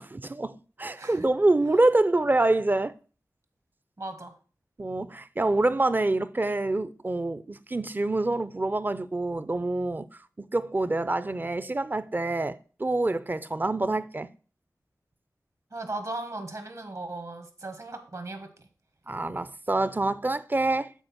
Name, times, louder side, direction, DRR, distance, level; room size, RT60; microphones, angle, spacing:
voice 1, 0.0-2.9 4.8-10.1 10.4-14.3 19.1-20.9, right 2 dB, 30° right, 0.5 m, -26 dB
voice 2, 1.0-1.3 4.0-4.3 15.7-18.5, right 2 dB, 55° right, 1.7 m, -37 dB
8.0 x 4.3 x 5.9 m
wide cardioid pair, 50°, 7 cm